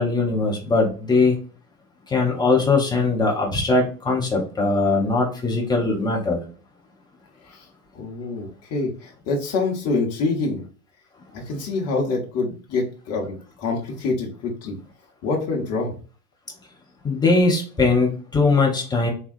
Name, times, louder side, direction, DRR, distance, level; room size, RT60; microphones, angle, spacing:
voice 1, 0.0-1.4 2.1-6.4 17.0-19.1, left 3 dB, 10° left, -1 dB, 0.4 m, -20 dB
voice 2, 7.9-10.6 11.3-14.8 15.2-16.0, left 3 dB, 30° left, -1 dB, 0.8 m, -26 dB
3.4 x 2.2 x 2.4 m, 0.39 s
figure-of-eight pair, 85°, 47 cm